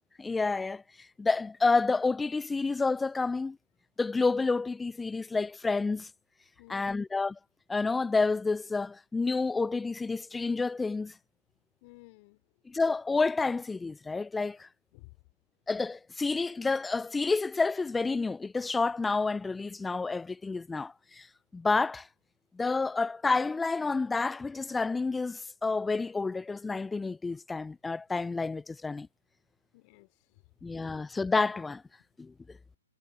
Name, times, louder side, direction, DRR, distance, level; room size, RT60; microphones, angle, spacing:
voice 1, 0.2-0.8 1.2-3.6 4.0-6.1 6.7-7.4 7.7-11.1 12.7-14.7 15.7-21.3 21.5-22.1 22.5-29.1 30.6-31.8 32.2-32.3, left 3 dB, 5° left, 0.4 m, -29 dB
voice 2, 6.6-7.0 11.8-12.4 14.9-15.2 29.7-30.4, left 26 dB, 35° left, 3.7 m, -54 dB
hypercardioid pair, 130°, 0 cm